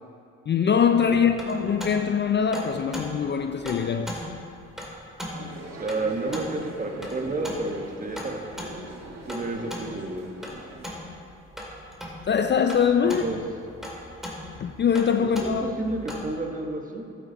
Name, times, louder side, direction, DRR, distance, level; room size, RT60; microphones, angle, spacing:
voice 1, 0.5-4.2 12.3-13.2 14.6-15.6, left 7 dB, 35° left, 0.5 m, -23 dB
sound 1, 0.9-16.3, equal, ahead, 2.4 m, -39 dB
sound 2, 5.3-10.9, right 2 dB, 60° right, 1.8 m, -43 dB
voice 2, 5.8-8.3 8.7-8.8 9.3-10.2 13.2-13.4 15.2-17.0, right 2 dB, 25° right, 1.5 m, -30 dB
13.0 x 9.0 x 4.1 m
cardioid pair, 90°, 30 cm